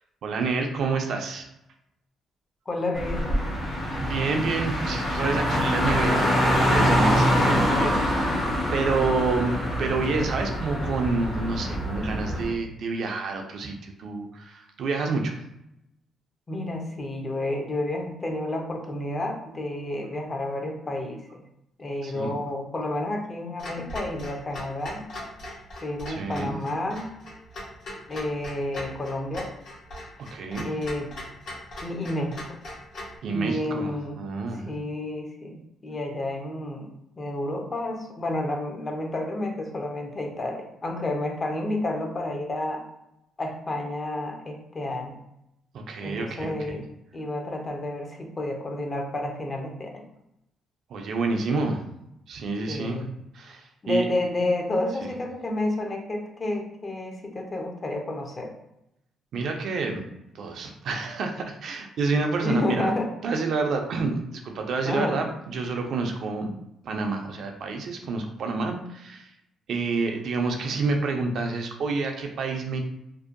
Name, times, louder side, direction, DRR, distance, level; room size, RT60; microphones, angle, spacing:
voice 1, 0.2-1.5 4.0-8.5 8.7-15.4 22.0-22.3 26.1-26.6 30.2-30.7 33.2-34.7 45.7-46.8 50.9-51.8 52.3-53.1 53.3-54.1 55.0-55.1 59.3-60.0 60.3-62.9 63.2-66.5 66.8-69.3 69.7-72.8, right 3 dB, 65° right, 3 dB, 0.4 m, -28 dB
voice 2, 2.7-3.4 16.5-21.4 21.8-25.1 25.8-27.1 28.1-29.5 30.6-31.1 31.8-32.4 33.3-34.2 34.7-42.8 43.4-45.2 46.0-46.8 47.1-50.0 51.5-51.6 52.7-53.1 53.8-58.5 62.4-63.1 64.8-65.2, left 1 dB, 30° left, 2 dB, 0.5 m, -30 dB
Car, 2.9-12.5, equal, 55° left, 0.9 m, -24 dB
Clock, 23.6-33.2, left 1 dB, 75° left, 1.2 m, -40 dB
2.6 x 2.1 x 2.5 m, 0.83 s
cardioid pair, 90°, 0 cm